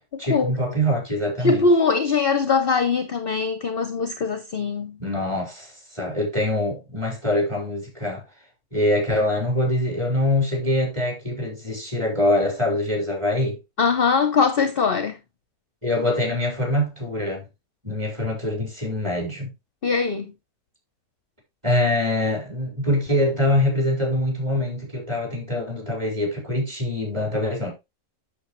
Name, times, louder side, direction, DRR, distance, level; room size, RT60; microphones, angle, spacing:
voice 1, 0.2-1.7 5.0-8.2 8.7-13.6 15.8-17.5 17.8-19.5 21.6-27.7, left 1 dB, 20° right, 4.8 m, -24 dB
voice 2, 1.4-5.0 13.8-15.2 19.8-20.3, left 4 dB, 45° left, 1.0 m, -21 dB
8.5 x 7.3 x 3.1 m
omnidirectional pair, 1.6 m